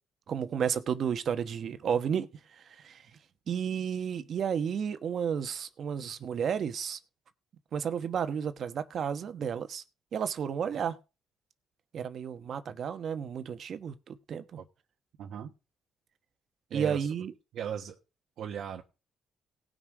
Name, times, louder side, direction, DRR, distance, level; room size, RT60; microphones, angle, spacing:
voice 1, 0.3-2.3 2.6-3.0 3.5-7.0 7.7-9.8 10.1-11.0 11.9-14.6 16.7-17.3, right 7 dB, 60° right, 1.2 m, -32 dB
voice 2, 15.2-15.5 16.7-17.1 17.5-18.0 18.4-18.8, right 8 dB, 75° right, 1.4 m, -37 dB
17.5 x 6.3 x 4.9 m
cardioid pair, 90°, 0 cm